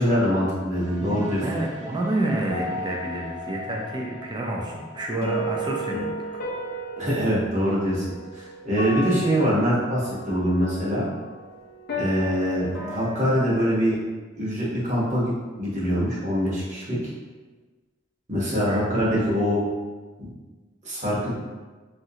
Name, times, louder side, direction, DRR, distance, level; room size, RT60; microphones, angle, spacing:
voice 1, 0.0-1.4 7.0-8.0 8.3-11.1 12.0-14.0 14.4-15.3 15.6-17.0 18.3-19.6 20.8-21.3, equal, 40° right, -7 dB, 1.0 m, -24 dB
sound 1, 0.7-8.5, right 2 dB, 60° right, 1.2 m, -43 dB
voice 2, 1.0-6.8 18.6-18.9, right 1 dB, 25° right, -1 dB, 0.4 m, -29 dB
sound 2, 2.5-13.6, right 1 dB, 50° left, 0.5 m, -34 dB
3.0 x 2.5 x 2.7 m, 1.3 s
head